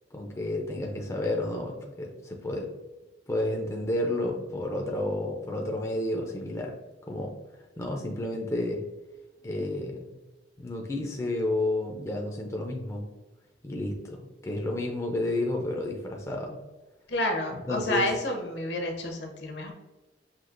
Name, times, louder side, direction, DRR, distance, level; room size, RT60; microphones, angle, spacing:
voice 1, 0.1-2.7 3.3-6.8 7.0-7.4 7.8-8.8 9.4-10.2 10.6-13.1 13.6-16.6 17.7-18.1, left 1 dB, 15° left, 0 dB, 0.4 m, -31 dB
voice 2, 17.1-19.7, left 1 dB, 70° left, 3 dB, 0.8 m, -30 dB
5.9 x 2.8 x 2.5 m, 1.1 s
head